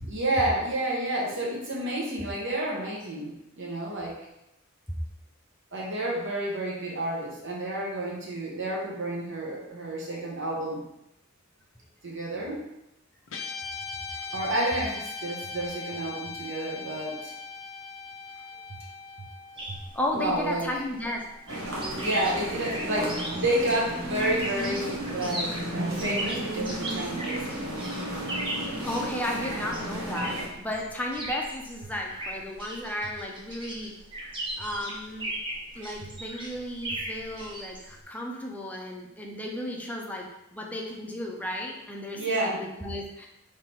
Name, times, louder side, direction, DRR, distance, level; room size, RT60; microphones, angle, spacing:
voice 1, 0.0-4.2 5.7-10.8 12.0-12.6 14.3-17.3 19.7-19.8 20.1-20.7 22.0-27.5 42.2-42.6, right 1 dB, 60° right, -3 dB, 1.2 m, -30 dB
Guitar, 13.3-21.8, left 4 dB, 65° left, 0.6 m, -40 dB
sound 1, 19.6-38.0, right 1 dB, 25° right, 1.0 m, -38 dB
voice 2, 19.9-21.2 28.8-33.9 34.6-35.3 35.7-43.3, left 1 dB, 10° left, 0 dB, 0.6 m, -34 dB
sound 2, 21.5-30.5, right 1 dB, 80° right, 1.3 m, -34 dB
3.6 x 3.3 x 4.5 m, 0.88 s
head